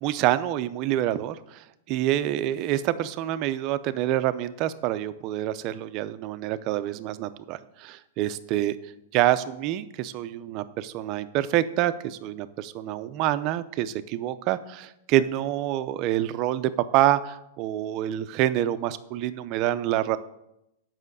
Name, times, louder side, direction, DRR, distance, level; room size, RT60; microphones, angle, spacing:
voice 1, 0.0-8.7 9.1-20.2, right 13 dB, 40° right, 13 dB, 0.5 m, -27 dB
7.4 x 5.7 x 6.7 m, 0.85 s
hypercardioid pair, 145°, 0 cm